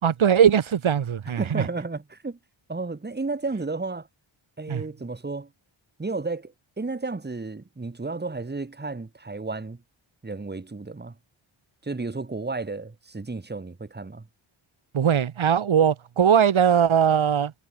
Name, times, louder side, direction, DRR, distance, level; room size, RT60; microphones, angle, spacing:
voice 1, 0.0-1.7 4.7-4.8 14.9-17.5, right 8 dB, 70° right, 1.9 m, -20 dB
voice 2, 1.4-2.4 2.7-4.1 4.6-5.5 6.0-9.8 10.2-11.1 11.8-14.3, right 3 dB, 20° right, 2.2 m, -32 dB
wide cardioid pair, 170°, 50 cm